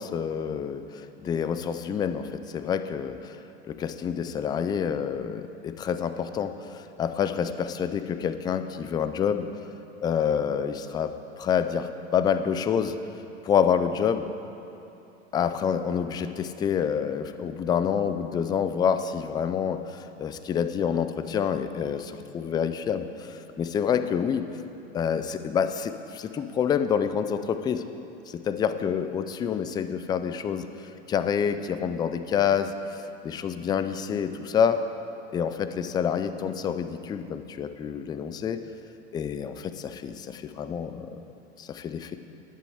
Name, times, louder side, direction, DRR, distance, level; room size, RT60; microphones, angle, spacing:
voice 1, 0.0-3.4 3.7-9.5 10.0-11.1 11.4-12.9 13.4-14.3 15.3-24.4 24.9-27.8 28.3-34.8 35.3-38.6 39.1-41.2 41.6-42.2, left 7 dB, 15° left, 10 dB, 0.3 m, -27 dB
11.0 x 8.3 x 7.8 m, 2.9 s
hypercardioid pair, 120°, 34 cm